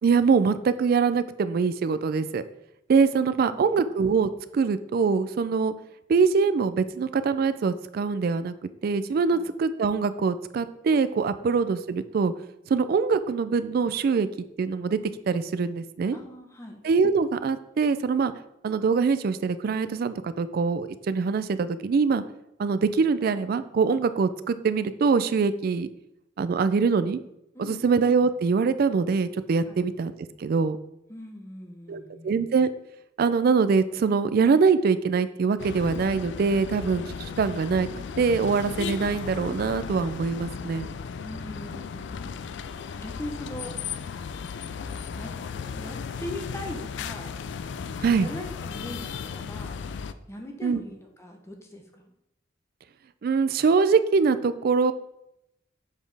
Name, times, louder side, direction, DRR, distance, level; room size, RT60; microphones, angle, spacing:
voice 1, 0.0-2.4 2.9-5.7 6.1-8.5 8.8-12.3 12.7-14.3 14.6-15.0 15.3-16.2 16.8-18.3 18.6-22.2 22.6-25.9 26.4-27.2 27.6-30.1 30.4-30.8 31.9-32.7 33.2-37.9 38.2-40.9 48.0-48.3 50.6-50.8 53.2-54.9, right 5 dB, 50° right, 13 dB, 0.3 m, -23 dB
voice 2, 3.2-3.7 9.3-9.5 11.4-11.5 16.1-16.8 27.5-27.9 29.7-29.8 31.1-32.4 41.2-42.4 42.9-43.8 45.1-45.4 45.7-47.4 48.1-49.8 50.3-52.1, left 1 dB, 15° left, 2 dB, 0.7 m, -40 dB
sound 1, 35.6-50.1, left 6 dB, 65° left, 0.3 m, -36 dB
7.1 x 4.1 x 3.3 m, 0.85 s
head